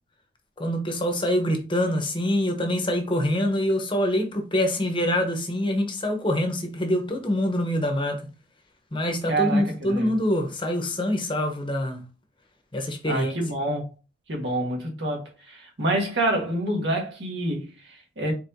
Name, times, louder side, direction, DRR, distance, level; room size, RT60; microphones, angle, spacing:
voice 1, 0.6-8.2 8.9-12.0 12.7-13.4, left 1 dB, 25° left, 1.0 m, -25 dB
voice 2, 9.3-10.1 13.0-13.9 14.3-18.3, right 1 dB, 70° right, 1.6 m, -27 dB
4.6 x 4.2 x 2.7 m
head